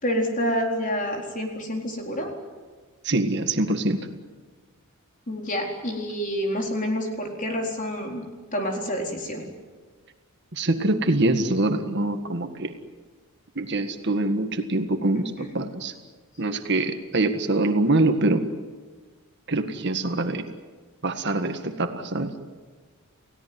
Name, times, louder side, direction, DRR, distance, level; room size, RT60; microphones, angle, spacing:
voice 1, 0.0-2.3 5.3-8.2 8.5-9.4, equal, 35° left, 2 dB, 4.2 m, -28 dB
voice 2, 3.0-4.0 10.5-12.7 13.6-15.9 16.4-18.5 19.5-20.5 21.0-22.3, right 2 dB, 50° right, 7 dB, 1.8 m, -24 dB
30.0 x 17.0 x 9.5 m, 1.4 s
head